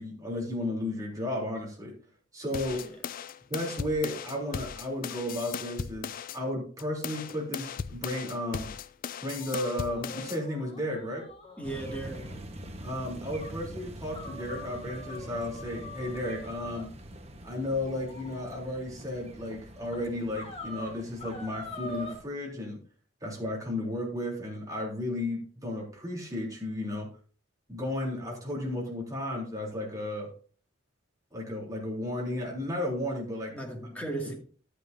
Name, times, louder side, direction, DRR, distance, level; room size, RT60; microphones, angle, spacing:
voice 1, 0.0-2.0 2.3-2.8 3.5-8.7 9.2-11.3 12.8-16.9 17.4-22.8 23.2-27.1 27.7-30.3 31.3-33.5, left 1 dB, 20° right, 3.4 m, -33 dB
sound 1, 2.5-6.4 6.8-10.4, left 7 dB, 45° left, 0.4 m, -37 dB
voice 2, 2.7-3.0 11.6-12.4 33.5-34.3, right 2 dB, 10° left, 2.2 m, -37 dB
sound 2, 9.4-12.4 12.8-12.9 13.4-13.6 14.1-16.9 17.9-18.4 19.2-19.3 19.9-20.0 20.3-22.2, left 2 dB, 30° left, 1.6 m, -44 dB
sound 3, 11.6-22.2, right 1 dB, 35° right, 1.3 m, -45 dB
12.5 x 8.4 x 2.7 m
head